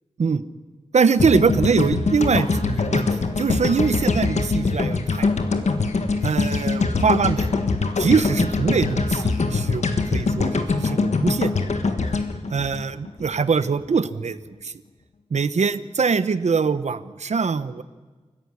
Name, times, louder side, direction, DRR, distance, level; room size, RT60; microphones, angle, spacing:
voice 1, 0.9-5.5 6.2-7.5 8.0-11.8 12.5-14.7 15.3-17.8, right 5 dB, 90° right, 13 dB, 1.0 m, -23 dB
sound 1, 1.2-13.4, left 3 dB, 90° left, 1.6 m, -23 dB
28.5 x 14.5 x 9.8 m, 1.3 s
wide cardioid pair, 70°, 11 cm